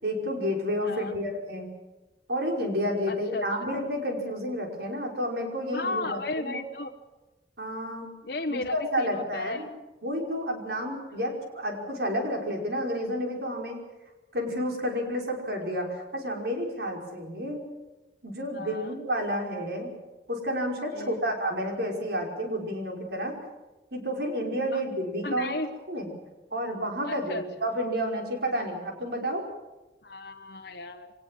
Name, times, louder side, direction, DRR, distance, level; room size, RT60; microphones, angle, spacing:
voice 1, 0.0-1.7 2.3-6.6 7.6-8.1 8.5-9.7 10.0-13.8 14.3-17.6 18.2-19.9 20.3-23.4 23.9-25.6 25.9-26.1 26.5-29.4, equal, 70° right, 2 dB, 5.4 m, -30 dB
voice 2, 0.8-1.1 3.1-3.5 5.7-6.9 8.2-9.6 18.5-19.0 20.9-21.2 24.7-24.8 25.2-25.7 27.0-27.4 30.0-31.1, left 2 dB, 70° left, 3 dB, 1.1 m, -34 dB
24.0 x 19.5 x 7.7 m, 1.1 s
head